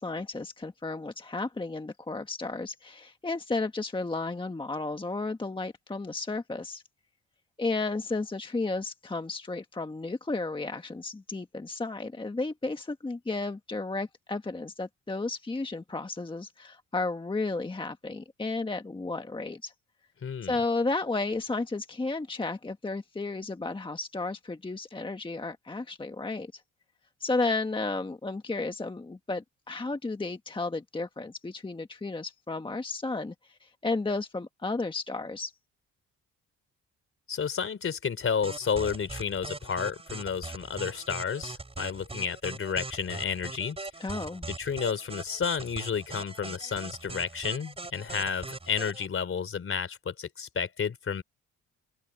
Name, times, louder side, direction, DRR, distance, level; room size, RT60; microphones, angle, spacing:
voice 1, 0.0-6.8 7.6-19.7 20.4-26.6 27.2-35.5 44.0-44.5, left 3 dB, 15° left, 1.4 m, -33 dB
voice 2, 20.2-20.5 37.3-43.8 44.5-51.2, left 6 dB, 45° left, 3.5 m, -31 dB
sound 1, 38.4-49.1, right 3 dB, 20° right, 5.0 m, -41 dB
open air
cardioid pair, 90°, 30 cm